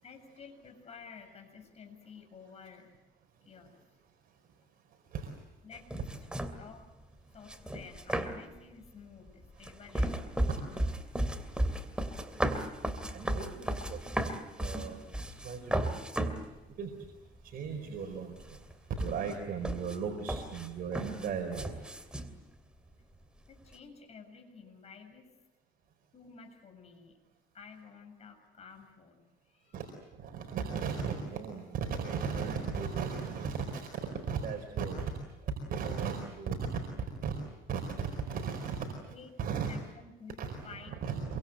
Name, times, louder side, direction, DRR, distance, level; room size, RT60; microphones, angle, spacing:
voice 1, 0.0-3.0 3.4-3.8 5.6-5.9 6.6-6.8 7.3-10.8 23.5-25.3 26.1-27.2 27.5-29.8 38.9-39.3 39.7-41.0, left 5 dB, 40° left, 5 dB, 7.3 m, -52 dB
sound 1, 5.7-6.7 7.5-8.6 9.3-16.5 17.0-17.1 17.4-18.1 18.4-22.3, right 1 dB, 5° right, 2.8 m, -34 dB
voice 2, 13.0-14.0 14.6-15.0 15.4-15.9 16.8-16.9 17.4-18.6 19.0-21.7 29.7-29.8 30.2-35.1 35.7-36.6 37.2-37.3 37.7-38.9 39.4-39.7 40.4-41.4, right 6 dB, 60° right, 2 dB, 4.8 m, -36 dB
27.0 x 24.5 x 8.0 m, 1.0 s
cardioid pair, 110°, 17 cm